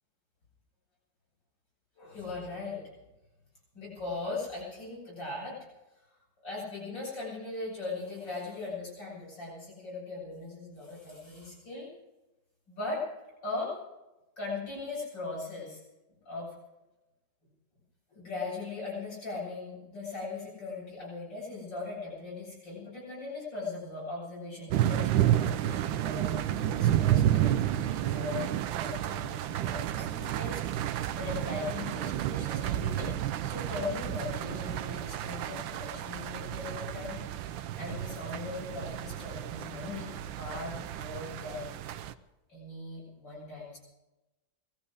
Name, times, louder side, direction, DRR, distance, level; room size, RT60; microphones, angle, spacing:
voice 1, 2.0-2.8 3.7-5.6 6.4-11.9 12.7-13.1 13.4-13.8 14.4-15.8 16.3-16.5 18.1-28.5 28.8-41.7 42.5-43.8, left 3 dB, 65° left, -5 dB, 8.0 m, -39 dB
sound 1, 24.7-42.1, right 12 dB, 80° right, 1.4 m, -31 dB
19.5 x 14.0 x 5.0 m, 1.0 s
omnidirectional pair, 2.1 m